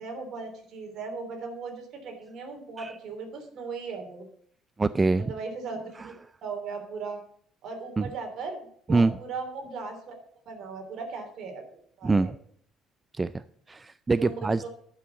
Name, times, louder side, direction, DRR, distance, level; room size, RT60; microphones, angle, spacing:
voice 1, 0.0-4.3 5.2-6.1 6.4-7.2 7.6-10.1 10.5-11.7 12.0-12.3 14.2-14.7, right 4 dB, 60° right, 3 dB, 3.3 m, -37 dB
voice 2, 4.8-5.3 6.0-6.1 8.0-8.1 8.9-9.2 12.0-12.4 13.1-14.6, right 3 dB, 20° right, 14 dB, 0.3 m, -25 dB
11.5 x 6.2 x 7.0 m, 0.63 s
cardioid pair, 105°, 0 cm